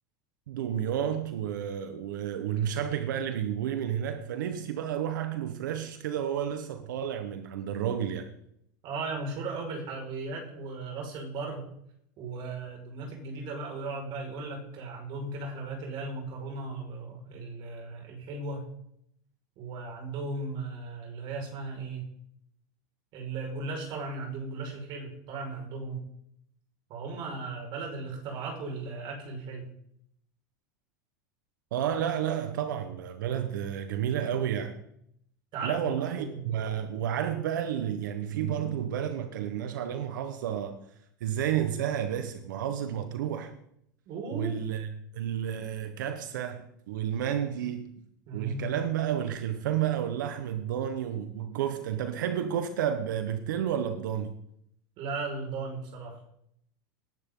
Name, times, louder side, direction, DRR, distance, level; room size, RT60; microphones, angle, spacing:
voice 1, 0.5-8.3 31.7-34.7 35.6-40.8 41.2-43.5 44.3-44.9 45.1-47.9 48.3-54.3, right 9 dB, 85° right, 1.2 m, -31 dB
voice 2, 8.8-11.7 12.2-18.7 19.6-22.1 23.1-26.1 26.9-29.7 35.5-36.4 44.1-44.5 48.3-48.7 55.0-56.2, right 3 dB, 50° right, 5.5 m, -36 dB
19.0 x 11.0 x 3.9 m
supercardioid pair, 115°, 10 cm